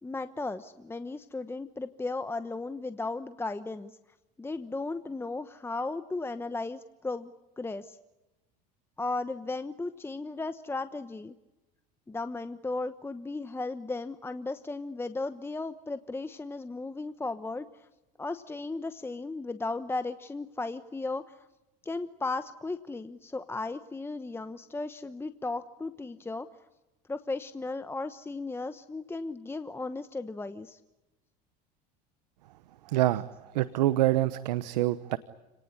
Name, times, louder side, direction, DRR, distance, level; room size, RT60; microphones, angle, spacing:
voice 1, 0.0-3.9 4.4-7.3 7.6-8.0 9.0-11.3 12.1-17.9 18.2-21.3 21.8-26.5 27.1-30.8, left 3 dB, 10° left, 10 dB, 1.1 m, -35 dB
voice 2, 32.8-35.2, right 15 dB, 90° right, 15 dB, 1.0 m, -26 dB
29.5 x 19.0 x 9.8 m, 1.0 s
supercardioid pair, 105°, 21 cm